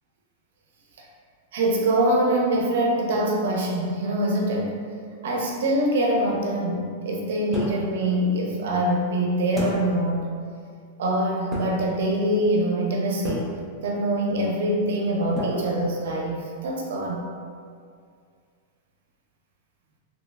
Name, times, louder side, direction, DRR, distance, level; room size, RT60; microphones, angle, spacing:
voice 1, 1.5-4.8 5.2-10.3 11.0-13.5 13.8-17.2, right 1 dB, 70° right, -1 dB, 0.5 m, -24 dB
sound 1, 7.5-8.1 9.6-10.1 11.5-12.0 13.2-13.8 15.4-16.3, equal, 5° left, 0.4 m, -32 dB
3.0 x 2.9 x 2.3 m, 2.2 s
supercardioid pair, 175°, 0 cm